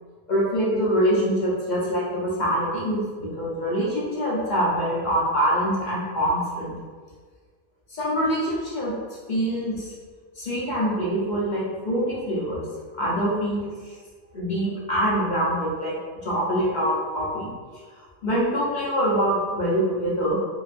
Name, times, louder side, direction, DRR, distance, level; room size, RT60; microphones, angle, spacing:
voice 1, 0.3-6.7 7.9-8.9 9.3-9.9 10.4-12.6 13.0-13.9 14.3-15.9 16.2-17.5 18.0-20.4, equal, 40° left, -6 dB, 0.7 m, -24 dB
3.9 x 2.7 x 2.5 m, 1.5 s
omnidirectional pair, 1.7 m